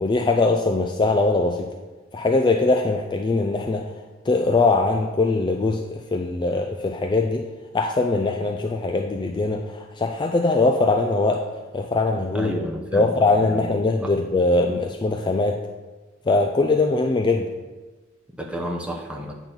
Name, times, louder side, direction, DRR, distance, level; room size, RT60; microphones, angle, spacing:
voice 1, 0.0-1.7 2.1-3.9 4.3-7.4 7.7-11.4 11.7-12.6 12.9-15.6 16.3-17.5, left 3 dB, 20° left, 4 dB, 0.3 m, -21 dB
voice 2, 12.3-13.1 13.5-13.6 14.0-14.1 18.4-19.3, equal, 5° right, 0 dB, 0.9 m, -31 dB
8.7 x 4.0 x 5.9 m, 1.2 s
head